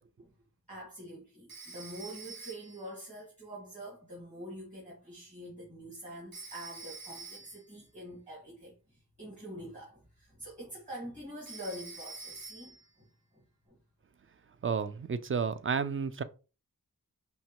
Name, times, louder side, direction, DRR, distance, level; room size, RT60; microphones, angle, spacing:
voice 1, 0.7-13.0 13.3-13.4 13.7-13.8, equal, 20° right, 1.8 m, -45 dB
Telephone, 1.5-2.9 6.3-7.7 11.5-12.9, right 3 dB, 80° right, 1.1 m, -47 dB
voice 2, 14.6-16.2, right 6 dB, 40° right, 0.4 m, -31 dB
5.2 x 2.2 x 2.9 m
wide cardioid pair, 50°, 34 cm